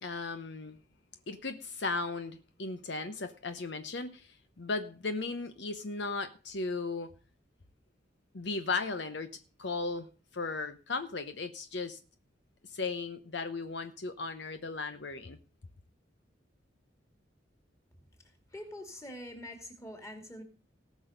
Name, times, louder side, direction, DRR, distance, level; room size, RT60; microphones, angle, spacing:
voice 1, 0.0-0.8 1.3-7.1 8.3-12.0 12.6-15.4, left 3 dB, 65° left, 0.9 m, -36 dB
voice 2, 18.5-20.4, left 1 dB, 15° left, 2.7 m, -45 dB
18.5 x 6.3 x 5.2 m
head